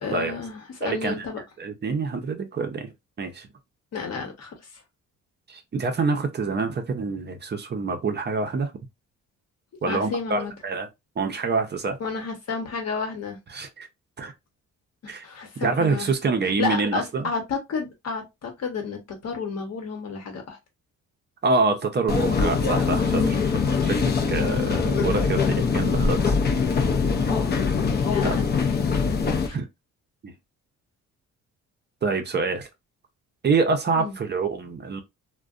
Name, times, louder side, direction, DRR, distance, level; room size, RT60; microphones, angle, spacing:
voice 1, 0.0-1.4 3.9-4.8 9.9-10.5 12.0-13.4 15.0-16.1 16.4-20.6 28.1-28.5 29.0-29.6 34.0-34.1, left 5 dB, 55° left, 1.0 m, -31 dB
voice 2, 0.8-1.2 1.6-2.9 3.2-3.5 5.5-8.7 9.8-10.9 11.2-12.0 13.5-13.9 14.2-14.3 15.1-15.2 15.6-17.3 21.4-26.4 28.2-28.4 29.5-29.6 30.2-30.3 32.0-32.7 33.4-35.0, right 4 dB, 35° right, 0.6 m, -26 dB
sound 1, 22.1-29.5, left 5 dB, 35° left, 0.5 m, -23 dB
2.5 x 2.2 x 2.4 m
cardioid pair, 90°, 30 cm